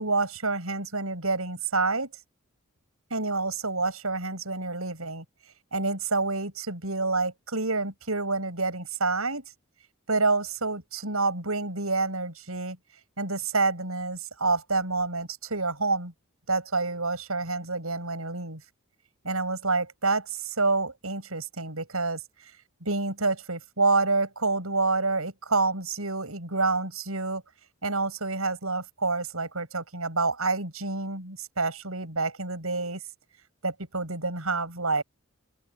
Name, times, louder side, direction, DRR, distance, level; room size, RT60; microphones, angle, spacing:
voice 1, 0.0-2.1 3.1-5.2 5.7-9.4 10.1-12.8 13.2-16.1 16.5-18.6 19.2-22.2 22.8-27.4 27.8-33.0 33.6-35.0, right 3 dB, 80° right, 7.4 m, -28 dB
open air
head